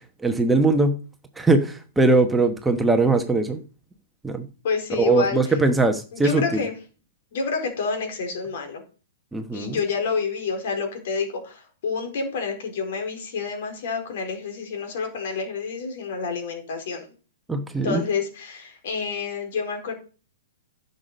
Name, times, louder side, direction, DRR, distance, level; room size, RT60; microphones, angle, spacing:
voice 1, 0.2-1.0 1.4-3.6 4.2-4.4 5.0-6.6 9.3-9.8 17.5-18.0, right 3 dB, 5° right, 5 dB, 1.1 m, -20 dB
voice 2, 4.6-5.6 6.1-6.7 7.3-8.8 9.5-17.1 17.8-19.9, left 5 dB, 55° left, 5 dB, 4.0 m, -28 dB
11.0 x 6.7 x 5.4 m, 0.37 s
hypercardioid pair, 125°, 0 cm